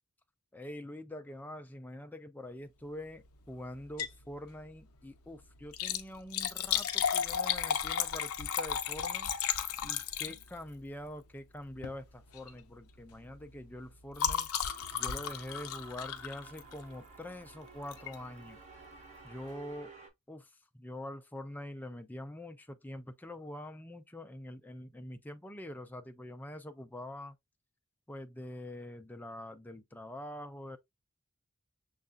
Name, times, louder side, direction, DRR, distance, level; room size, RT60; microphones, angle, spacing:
voice 1, 0.5-9.3 9.8-14.5 14.9-18.6 19.2-19.9 20.3-27.4 28.1-30.8, left 1 dB, 10° left, 0.4 m, -45 dB
Liquid, 3.8-4.2 4.6-4.7 5.6-10.7 11.7-12.0 12.3-12.6 12.9-17.0 17.9-18.2 18.7-18.8 19.0-19.1, left 8 dB, 85° left, 0.6 m, -34 dB
sound 1, 14.6-20.1, right 5 dB, 35° right, 1.1 m, -54 dB
6.5 x 2.4 x 2.4 m
head